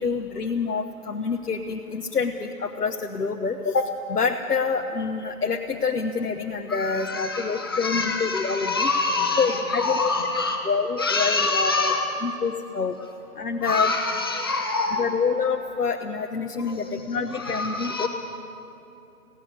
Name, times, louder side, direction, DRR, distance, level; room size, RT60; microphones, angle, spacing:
voice 1, 0.0-8.9 9.4-10.1 10.7-11.9 12.2-13.0 13.4-13.9 15.0-18.1, left 5 dB, 85° left, 2 dB, 1.3 m, -27 dB
voice 2, 6.7-10.7 11.0-12.1 13.6-15.1 16.6-18.1, left 3 dB, 15° left, 1 dB, 1.0 m, -26 dB
16.5 x 16.5 x 9.7 m, 2.9 s
hypercardioid pair, 170°, 45 cm